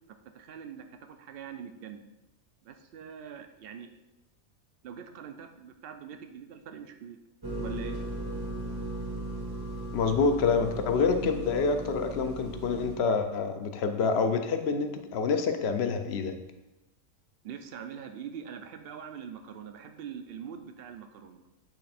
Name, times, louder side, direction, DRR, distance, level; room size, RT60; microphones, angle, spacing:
voice 1, 0.1-2.0 2.6-3.9 4.8-7.2 7.6-8.0 17.4-21.4, right 7 dB, 65° right, 7 dB, 0.5 m, -43 dB
sound 1, 7.4-13.0, right 1 dB, 25° right, 0.6 m, -37 dB
voice 2, 9.9-16.3, left 5 dB, 65° left, 7 dB, 0.7 m, -27 dB
8.3 x 3.3 x 4.2 m, 0.99 s
omnidirectional pair, 1.5 m